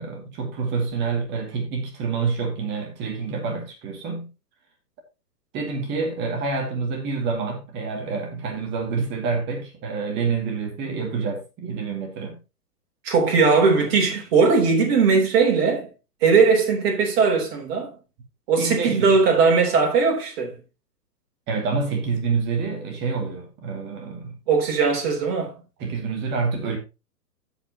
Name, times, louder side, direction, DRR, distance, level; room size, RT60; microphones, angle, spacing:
voice 1, 0.0-4.3 5.5-12.4 18.6-19.2 21.5-24.4 25.8-26.8, right 4 dB, 20° right, 2.2 m, -27 dB
voice 2, 13.0-15.9 16.2-17.9 18.5-20.6 24.5-25.5, right 4 dB, 40° right, 3.4 m, -19 dB
16.0 x 5.3 x 2.9 m
figure-of-eight pair, 115°, 48 cm